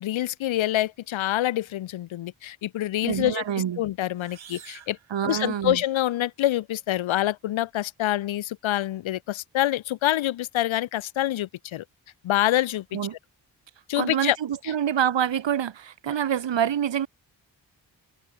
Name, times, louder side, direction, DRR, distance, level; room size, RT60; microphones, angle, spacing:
voice 1, 0.0-3.4 3.8-5.0 5.2-11.8 12.2-12.8 13.9-14.4, left 14 dB, 85° left, 0.7 m, -26 dB
voice 2, 3.0-3.8 5.1-5.8 12.9-13.2 14.0-17.1, right 9 dB, 70° right, 1.2 m, -26 dB
sound 1, 4.1-6.0, right 8 dB, 85° right, 5.2 m, -49 dB
cardioid pair, 50°, 46 cm